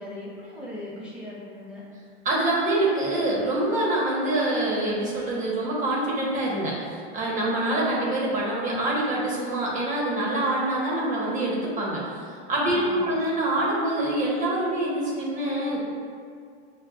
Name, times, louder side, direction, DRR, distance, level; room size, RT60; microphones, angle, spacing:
voice 1, 0.0-1.8 12.7-13.2, left 1 dB, 5° right, -9 dB, 0.8 m, -39 dB
voice 2, 2.2-12.0 12.5-15.8, right 1 dB, 25° right, -5 dB, 1.0 m, -25 dB
6.3 x 2.3 x 2.4 m, 2.2 s
supercardioid pair, 120°, 32 cm